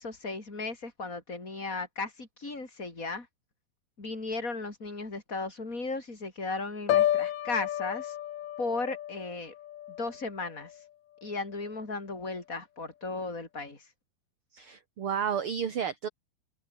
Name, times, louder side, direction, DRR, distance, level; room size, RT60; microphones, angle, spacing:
voice 1, 0.0-3.3 4.0-8.2 8.6-9.5 10.0-10.9 11.2-13.9, left 3 dB, 25° left, 4.8 m, -36 dB
Piano, 6.9-10.8 11.2-11.6, left 12 dB, 65° left, 2.4 m, -31 dB
voice 2, 14.5-16.1, right 8 dB, 45° right, 2.4 m, -31 dB
omnidirectional pair, 4.0 m